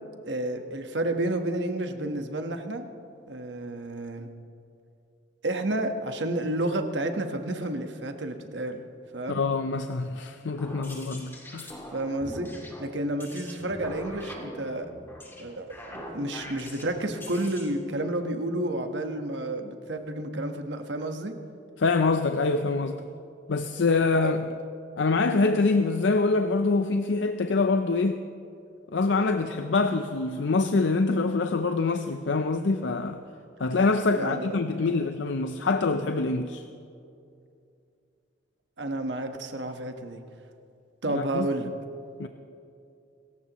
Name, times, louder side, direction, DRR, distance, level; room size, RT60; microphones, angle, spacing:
voice 1, 0.3-2.9 3.3-4.3 5.4-8.8 9.1-9.4 11.9-12.5 12.8-14.9 15.4-21.3 24.1-24.3 34.1-34.9 38.8-40.2 41.0-41.7, right 1 dB, 70° right, 5 dB, 1.3 m, -31 dB
voice 2, 9.3-11.7 21.8-23.1 23.5-24.5 25.0-28.2 28.9-33.2 33.6-36.6 41.1-41.5 42.2-42.3, left 3 dB, 80° left, 8 dB, 0.6 m, -25 dB
sound 1, 10.5-17.7, equal, 15° left, 2.3 m, -42 dB
27.5 x 14.5 x 3.1 m, 2.5 s
head